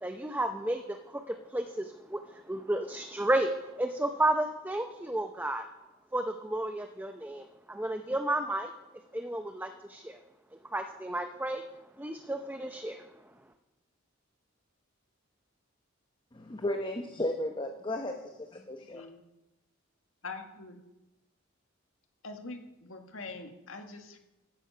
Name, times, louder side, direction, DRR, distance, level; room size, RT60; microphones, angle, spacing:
voice 1, 0.0-5.6 6.1-8.7 9.1-10.2 10.7-11.6 12.0-13.1, right 1 dB, 10° right, 6 dB, 0.6 m, -32 dB
voice 2, 16.3-19.1, left 1 dB, 25° left, 3 dB, 0.9 m, -34 dB
voice 3, 18.9-19.2 20.2-20.8 22.2-24.2, left 3 dB, 75° left, 5 dB, 1.8 m, -43 dB
14.5 x 9.9 x 5.6 m, 0.99 s
head